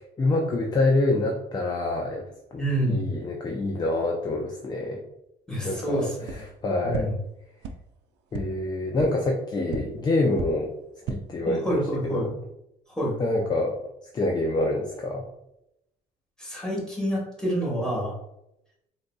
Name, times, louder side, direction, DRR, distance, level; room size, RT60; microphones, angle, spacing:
voice 1, 0.2-2.3 2.5-5.0 5.6-7.1 8.3-10.7 11.1-12.3 13.2-13.8 14.1-15.2, left 2 dB, 25° left, 1 dB, 0.4 m, -26 dB
voice 2, 2.6-3.0 5.5-6.4 6.8-7.1 11.4-12.3 13.0-13.2 16.4-18.1, equal, 5° left, -5 dB, 1.4 m, -27 dB
sound 1, 6.2-6.4 6.9-7.0 7.6-7.7 8.3-8.4 9.0-9.1 9.7-9.8 10.3-10.5 10.9-11.2, right 6 dB, 85° right, 0.4 m, -32 dB
3.8 x 2.6 x 2.2 m, 0.83 s
cardioid pair, 110°, 17 cm